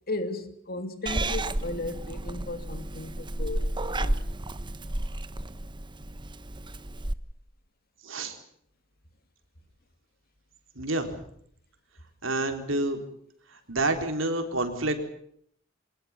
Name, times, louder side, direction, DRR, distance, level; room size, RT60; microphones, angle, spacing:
voice 1, 0.1-3.7 4.0-4.2, left 2 dB, 50° left, 2.9 m, -35 dB
Purr / Meow, 1.1-7.1, right 1 dB, 25° right, 1.1 m, -32 dB
voice 2, 8.0-8.4 10.8-11.1 12.2-13.0 13.7-15.1, right 2 dB, 70° right, 4.1 m, -28 dB
25.0 x 20.0 x 7.4 m
head